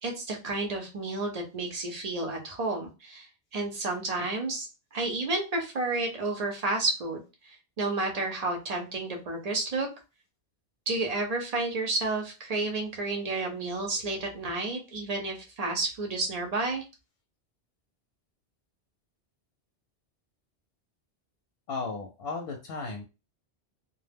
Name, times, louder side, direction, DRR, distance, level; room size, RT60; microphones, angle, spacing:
voice 1, 0.0-9.9 10.9-16.8, right 2 dB, 40° right, 1 dB, 0.7 m, -31 dB
voice 2, 21.7-23.0, left 4 dB, 65° left, 3 dB, 0.7 m, -35 dB
2.2 x 2.1 x 3.3 m, 0.29 s
omnidirectional pair, 1.1 m